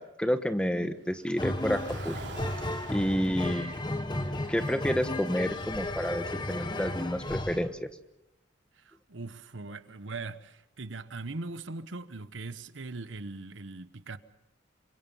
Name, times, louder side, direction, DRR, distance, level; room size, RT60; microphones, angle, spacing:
voice 1, 0.0-2.2 2.8-3.9 4.5-7.8, equal, 5° left, 1.2 m, -30 dB
Car, 1.1-5.5, right 4 dB, 65° right, 3.4 m, -48 dB
sound 1, 1.4-7.7, left 1 dB, 25° left, 1.4 m, -34 dB
sound 2, 5.6-6.1 6.9-8.1, equal, 70° left, 6.0 m, -49 dB
voice 2, 8.8-14.2, right 3 dB, 80° right, 1.1 m, -40 dB
27.5 x 24.5 x 5.5 m
head